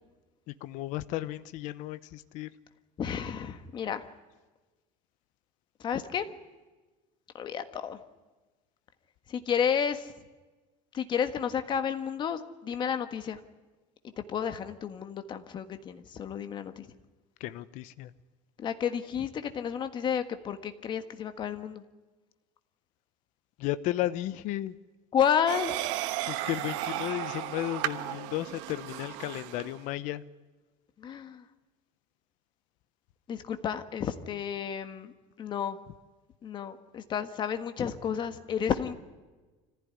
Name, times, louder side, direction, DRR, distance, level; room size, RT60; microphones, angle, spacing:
voice 1, 0.6-2.5 17.4-18.1 23.6-24.8 26.2-30.2, left 15 dB, 55° left, 14 dB, 0.9 m, -34 dB
voice 2, 3.0-4.0 5.8-6.3 7.3-8.0 9.3-10.1 10.9-13.4 14.3-16.8 18.6-21.8 25.1-25.7 31.0-31.4 33.3-35.1 35.4-35.8 36.4-38.9, left 8 dB, 30° left, 9 dB, 1.5 m, -31 dB
sound 1, 25.5-29.8, right 15 dB, 85° right, 1.2 m, -34 dB
25.5 x 15.5 x 9.6 m, 1.3 s
cardioid pair, 160°, 16 cm